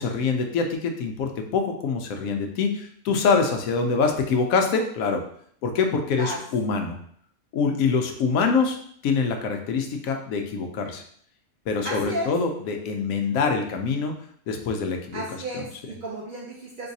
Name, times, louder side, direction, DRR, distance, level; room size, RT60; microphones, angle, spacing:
voice 1, 0.0-5.2 5.6-7.0 7.5-8.8 9.0-11.0 11.7-14.1 14.5-15.2 15.5-15.6, left 5 dB, 70° left, 4 dB, 0.9 m, -25 dB
voice 2, 11.8-12.3 15.1-16.9, right 1 dB, 75° right, -3 dB, 0.4 m, -33 dB
3.8 x 2.6 x 2.7 m, 0.62 s
omnidirectional pair, 1.6 m